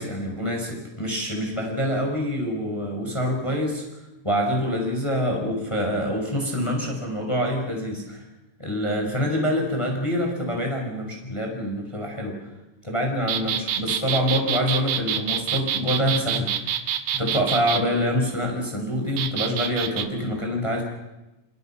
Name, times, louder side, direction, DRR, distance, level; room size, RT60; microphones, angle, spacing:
voice 1, 0.0-3.8 4.2-8.2 8.6-12.3 12.8-16.7 17.1-20.8, equal, 5° left, 1 dB, 5.1 m, -26 dB
sound 1, 13.3-17.8 19.2-20.0, right 9 dB, 65° right, 3.1 m, -26 dB
29.0 x 26.0 x 5.8 m, 0.99 s
omnidirectional pair, 5.0 m